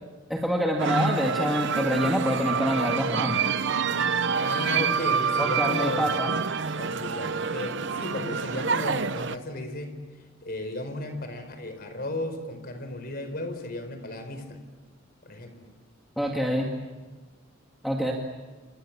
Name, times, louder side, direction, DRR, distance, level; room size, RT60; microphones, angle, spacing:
voice 1, 0.3-3.5 5.4-6.3 16.2-16.7 17.8-18.1, equal, ahead, -1 dB, 2.2 m, -26 dB
sound 1, 0.8-9.4, right 5 dB, 60° right, 0.9 m, -27 dB
voice 2, 4.3-6.1 6.7-9.9 10.4-14.6 15.2-15.7 16.2-16.3, left 1 dB, 50° left, 8 dB, 4.6 m, -34 dB
29.5 x 27.0 x 7.4 m, 1.3 s
head